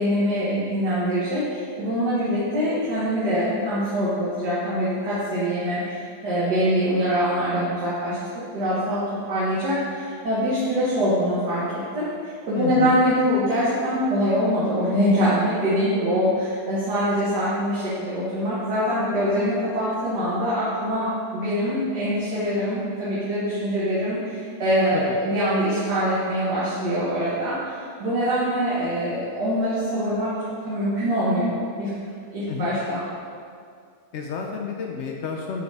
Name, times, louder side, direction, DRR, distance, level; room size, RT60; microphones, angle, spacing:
voice 1, 0.0-12.1 12.5-30.4 30.6-31.9 32.3-33.0, equal, 80° right, -10 dB, 1.9 m, -24 dB
voice 2, 12.6-13.0 24.9-25.2 32.5-32.7 34.1-35.6, left 5 dB, 80° left, 1 dB, 0.6 m, -30 dB
7.6 x 4.2 x 3.4 m, 2.2 s
omnidirectional pair, 1.8 m